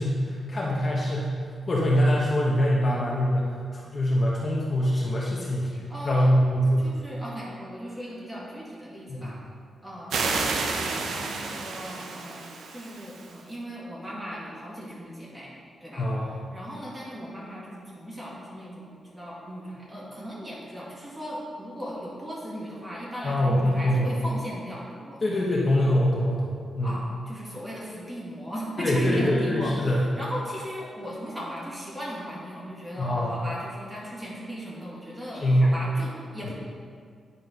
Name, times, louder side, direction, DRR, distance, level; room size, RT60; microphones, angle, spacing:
voice 1, 0.0-5.7 6.0-7.0 9.1-9.4 16.0-16.3 23.2-24.1 25.2-27.0 28.8-30.1 33.0-33.3 35.3-35.7 36.4-36.5, equal, 35° left, -4 dB, 1.0 m, -24 dB
voice 2, 5.7-6.3 6.8-9.4 9.8-12.5 12.7-15.5 15.8-16.1 16.5-25.2 26.8-36.5, equal, 10° right, -6 dB, 2.0 m, -37 dB
sound 1, 10.1-13.4, right 4 dB, 85° right, 0.7 m, -30 dB
9.4 x 4.3 x 5.3 m, 2.1 s
wide cardioid pair, 145°, 0 cm